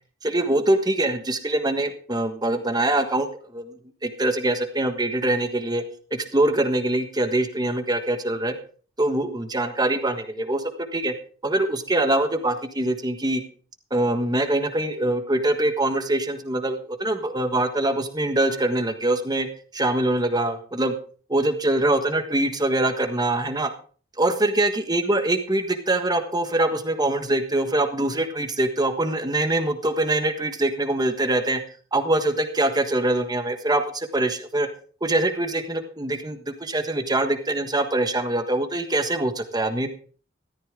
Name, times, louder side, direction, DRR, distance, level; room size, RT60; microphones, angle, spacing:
voice 1, 0.2-3.7 4.0-5.8 6.1-8.5 9.0-11.1 11.4-13.4 13.9-19.5 19.7-20.9 21.3-23.7 24.2-31.6 31.9-34.7 35.0-39.9, right 1 dB, 20° right, 8 dB, 1.4 m, -23 dB
14.0 x 13.5 x 3.8 m, 0.42 s
head